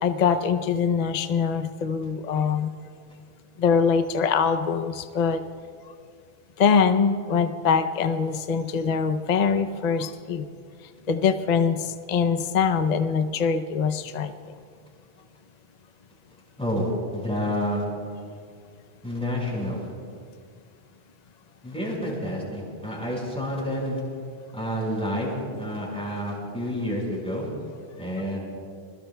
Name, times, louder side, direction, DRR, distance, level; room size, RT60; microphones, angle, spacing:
voice 1, 0.0-2.7 3.6-5.4 6.6-10.5 11.1-14.3, left 6 dB, 45° left, 8 dB, 0.7 m, -23 dB
voice 2, 16.6-17.8 19.0-19.9 21.6-24.0 24.5-27.5 28.0-28.4, equal, 5° left, -4 dB, 5.1 m, -29 dB
28.0 x 21.5 x 2.3 m, 2.2 s
omnidirectional pair, 1.1 m